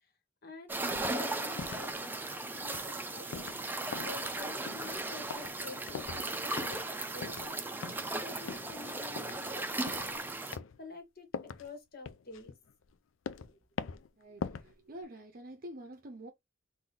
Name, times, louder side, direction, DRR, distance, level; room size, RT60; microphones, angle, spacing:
voice 1, 0.4-2.1 2.6-3.6 4.0-7.9 8.2-10.2 10.8-12.5 13.5-13.6, left 4 dB, 55° left, 1.6 m, -49 dB
sound 1, 0.7-10.6, right 2 dB, 10° right, 0.6 m, -37 dB
sound 2, 0.9-1.2 1.5-1.9 2.5-2.9 3.3-3.7 3.9-4.4 4.7-5.0 5.3-5.6 5.9-6.3 6.6-6.9 7.2-7.5 7.8-8.1 8.5-8.8 9.2-9.4 9.9-10.1 10.5-10.8 11.3-11.7 12.0-12.9 13.3-13.5 13.8-14.1 14.4-14.7 15.0-15.1, left 5 dB, 75° left, 0.4 m, -42 dB
voice 2, 14.2-16.3, right 1 dB, 50° right, 0.7 m, -47 dB
3.9 x 2.7 x 3.2 m
head